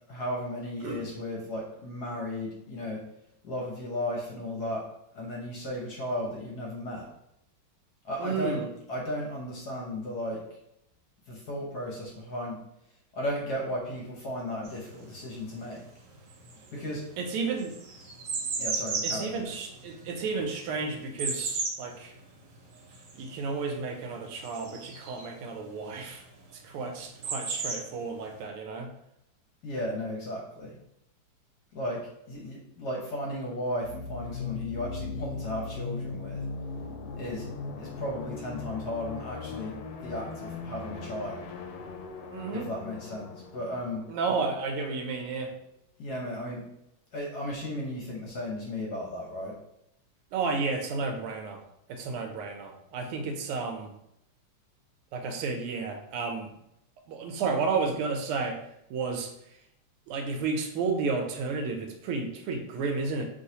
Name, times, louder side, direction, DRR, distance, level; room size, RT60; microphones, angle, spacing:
voice 1, 0.1-3.0 3.4-4.8 5.1-7.1 8.0-8.6 8.9-10.4 11.3-12.6 13.1-15.8 16.7-17.0 18.6-19.6 29.6-30.7 31.7-32.0 32.3-36.4 37.1-37.5 37.8-39.7 40.0-41.5 42.5-44.0 46.0-46.6 47.1-49.5, left 1 dB, 55° left, -2 dB, 1.2 m, -35 dB
voice 2, 8.2-8.7 17.2-17.7 19.0-22.1 23.1-26.2 26.5-28.9 42.3-42.7 44.1-45.5 50.3-51.6 51.9-53.9 55.1-56.5 57.1-59.3 60.1-63.3, right 4 dB, 80° right, 5 dB, 1.5 m, -32 dB
sound 1, 14.6-15.8 16.1-25.4 26.5-26.6 26.8-28.3, right 4 dB, 65° right, 1.3 m, -35 dB
sound 2, 33.8-45.4, left 4 dB, 80° left, 1.5 m, -39 dB
5.4 x 3.2 x 2.8 m, 0.79 s
omnidirectional pair, 2.4 m